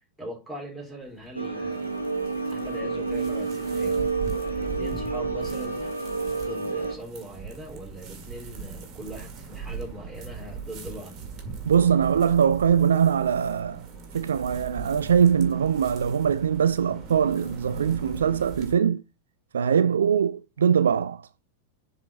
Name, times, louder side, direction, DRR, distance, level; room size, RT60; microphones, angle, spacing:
voice 1, 0.2-2.0 2.5-6.0 6.4-11.2, equal, 5° right, 3.7 m, -41 dB
sound 1, 1.0-18.7, right 5 dB, 35° right, 1.9 m, -40 dB
sound 2, 1.3-6.9, right 4 dB, 85° right, 1.1 m, -29 dB
voice 2, 11.6-13.9 14.1-19.0 19.5-21.3, right 8 dB, 65° right, 0.3 m, -22 dB
7.2 x 4.2 x 4.8 m
figure-of-eight pair, 90°, 0 cm